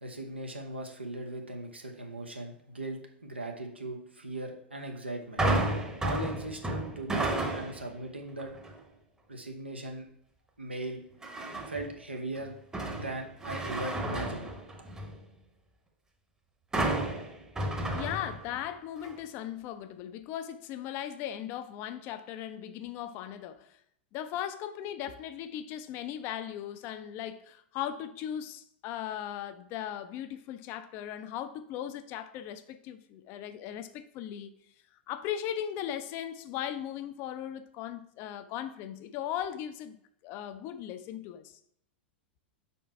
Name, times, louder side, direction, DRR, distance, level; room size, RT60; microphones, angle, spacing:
voice 1, 0.0-5.4 6.0-8.5 9.3-10.1 10.6-11.0 11.7-12.5 12.9-14.5, right 2 dB, 85° right, 1.0 m, -39 dB
sound 1, 5.4-7.9 8.4-8.8 11.2-11.9 12.4-15.2 16.7-18.7 19.0-19.1, right 1 dB, 10° right, 0.9 m, -32 dB
voice 2, 17.9-23.8 24.1-34.5 35.1-41.6, left 10 dB, 40° left, 0.5 m, -38 dB
5.3 x 4.3 x 4.4 m
figure-of-eight pair, 90°, 6 cm